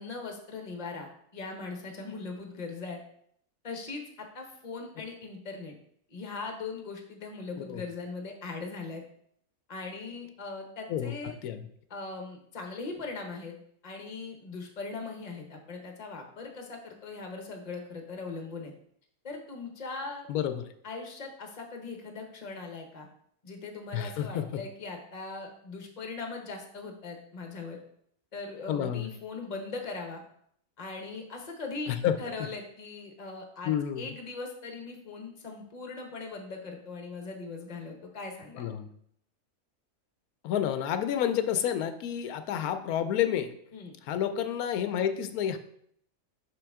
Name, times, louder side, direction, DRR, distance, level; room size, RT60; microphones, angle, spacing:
voice 1, 0.0-3.0 3.6-5.8 6.1-9.0 9.7-11.3 11.9-13.5 13.8-18.7 19.2-20.3 20.8-23.1 23.4-27.8 28.3-30.2 30.8-31.9 32.2-38.7 43.7-43.9, left 3 dB, 35° left, 3 dB, 0.9 m, -40 dB
voice 2, 20.3-20.6 23.9-24.4 28.7-29.1 31.9-32.2 33.6-34.1 38.6-38.9 40.4-43.5 44.0-45.6, left 9 dB, 85° left, 10 dB, 1.1 m, -29 dB
5.8 x 5.6 x 3.5 m, 0.68 s
omnidirectional pair, 1.5 m